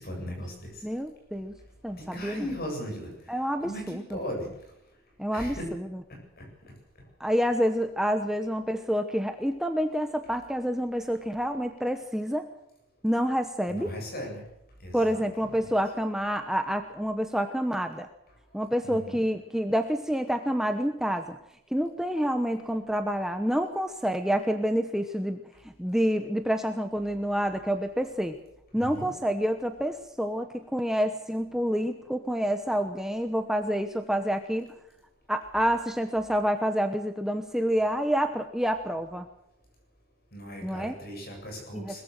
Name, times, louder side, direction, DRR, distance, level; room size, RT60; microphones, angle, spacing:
voice 1, 0.0-0.8 2.0-4.5 5.3-5.7 6.4-6.5 13.7-14.4 14.8-15.5 18.8-19.2 28.8-29.1 40.3-42.0, equal, 45° left, 3 dB, 7.6 m, -38 dB
voice 2, 0.8-1.5 1.8-2.4 3.3-4.0 5.2-5.9 7.2-12.5 13.0-13.9 14.9-18.1 18.5-21.4 21.7-28.4 28.7-34.7 35.3-39.3 40.6-40.9 41.7-42.0, equal, ahead, 6 dB, 0.9 m, -28 dB
22.0 x 21.0 x 6.6 m, 0.83 s
head